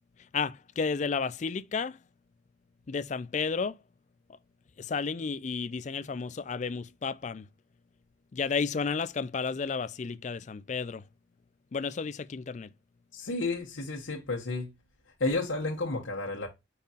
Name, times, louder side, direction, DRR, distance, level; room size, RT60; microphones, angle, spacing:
voice 1, 0.3-2.0 2.9-3.8 4.8-7.5 8.3-11.0 11.7-12.7, left 5 dB, 40° left, 0.3 m, -32 dB
voice 2, 13.1-14.7 15.2-16.5, left 2 dB, 85° left, 1.0 m, -31 dB
5.4 x 4.0 x 2.4 m
head